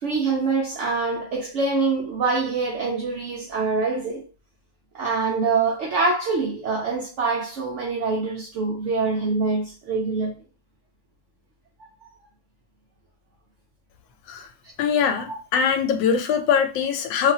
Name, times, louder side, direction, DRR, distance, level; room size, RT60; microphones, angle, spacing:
voice 1, 0.0-4.2 4.9-10.3, right 4 dB, 80° right, 0.6 m, -25 dB
voice 2, 14.8-17.3, left 7 dB, 90° left, 1.3 m, -22 dB
3.0 x 2.4 x 2.7 m
omnidirectional pair, 1.9 m